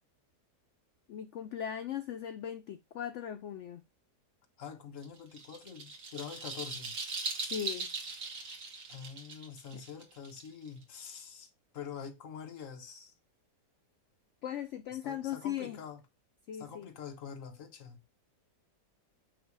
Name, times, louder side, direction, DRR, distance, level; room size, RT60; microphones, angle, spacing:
voice 1, 1.1-3.8 7.4-7.9 14.4-15.8 16.5-16.9, left 10 dB, 80° left, 0.6 m, -38 dB
voice 2, 4.6-7.0 8.9-13.1 15.0-16.0 16.6-18.0, left 7 dB, 50° left, 1.4 m, -45 dB
sound 1, 5.0-10.8, right 3 dB, 75° right, 2.0 m, -40 dB
8.1 x 2.8 x 4.7 m
omnidirectional pair, 1.8 m